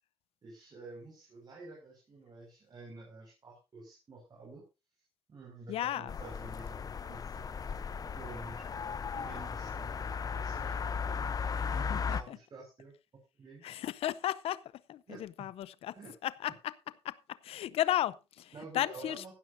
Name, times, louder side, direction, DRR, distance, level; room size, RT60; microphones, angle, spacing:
voice 1, 0.4-4.6 5.3-6.8 7.1-7.5 7.8-8.6 9.1-11.4 11.7-12.9 13.4-13.7 15.1-15.2 16.0-16.1 18.5-19.3, right 3 dB, 45° right, 5.7 m, -50 dB
voice 2, 5.7-6.1 11.6-12.4 13.6-14.6 14.9-15.9 16.2-16.5 17.0-17.2 17.4-19.3, left 12 dB, 85° left, 0.7 m, -34 dB
sound 1, 6.1-12.2, left 6 dB, 40° left, 0.7 m, -36 dB
16.0 x 12.5 x 2.7 m
cardioid pair, 105°, 10 cm